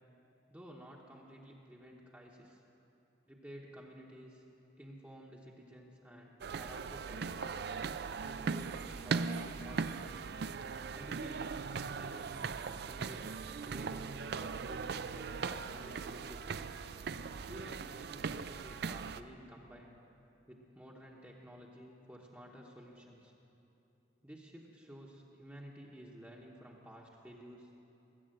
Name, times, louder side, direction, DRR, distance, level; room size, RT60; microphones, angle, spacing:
voice 1, 0.5-2.6 3.3-4.4 4.8-7.7 8.2-10.0 10.9-11.7 12.0-16.6 17.5-20.0 20.5-23.3 24.2-27.7, equal, 10° right, -3 dB, 1.0 m, -53 dB
sound 1, 6.4-19.2, right 5 dB, 60° right, 0.4 m, -39 dB
20.0 x 8.3 x 7.6 m, 2.9 s
head